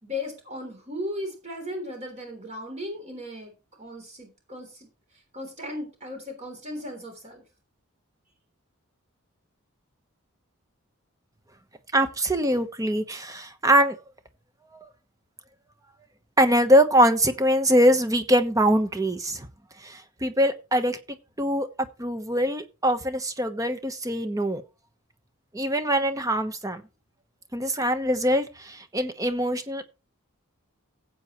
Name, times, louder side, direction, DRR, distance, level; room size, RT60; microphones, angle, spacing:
voice 1, 0.0-3.5 3.8-4.9 5.3-7.4, left 1 dB, 30° right, 3.5 m, -36 dB
voice 2, 11.9-14.0 16.4-19.5 19.8-21.0 21.4-21.7 22.0-24.6 25.5-26.8 27.5-29.8, equal, 15° right, 1.1 m, -23 dB
16.0 x 8.0 x 3.1 m
head